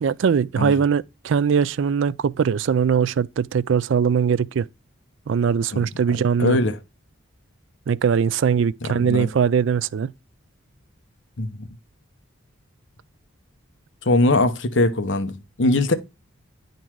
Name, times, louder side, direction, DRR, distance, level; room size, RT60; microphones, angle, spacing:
voice 1, 0.0-4.6 5.3-6.6 7.9-10.1, right 7 dB, 60° right, 0.3 m, -21 dB
voice 2, 5.7-6.8 8.9-9.3 11.4-11.7 14.0-15.9, left 2 dB, 60° left, 0.9 m, -22 dB
10.0 x 3.9 x 4.6 m
head